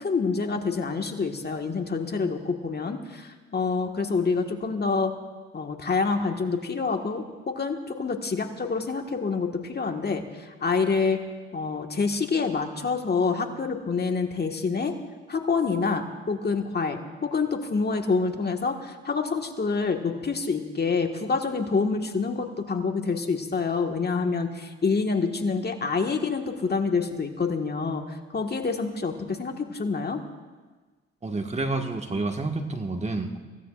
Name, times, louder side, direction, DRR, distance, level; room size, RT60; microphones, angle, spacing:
voice 1, 0.0-5.1 5.5-11.2 11.5-14.9 15.3-30.2, left 4 dB, 35° left, 4 dB, 1.7 m, -27 dB
voice 2, 31.2-33.4, right 2 dB, 20° right, 4 dB, 1.6 m, -29 dB
24.5 x 16.5 x 2.5 m, 1.4 s
supercardioid pair, 65°, 30 cm